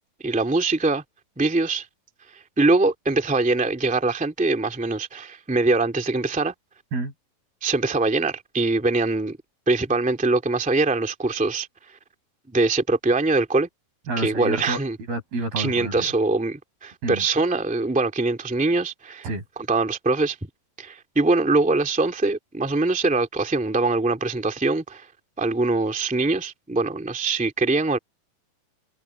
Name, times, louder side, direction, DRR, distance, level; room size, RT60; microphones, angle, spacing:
voice 1, 0.2-1.0 1.4-1.9 2.6-6.5 7.6-9.4 9.7-11.7 12.5-13.7 14.2-15.0 15.6-19.3 19.7-20.4 20.8-25.1 25.4-28.0, right 3 dB, 5° right, 1.9 m, -23 dB
voice 2, 14.1-14.8 15.1-16.0 17.0-17.2 19.2-19.4, right 2 dB, 85° right, 8.4 m, -28 dB
omnidirectional pair, 4.2 m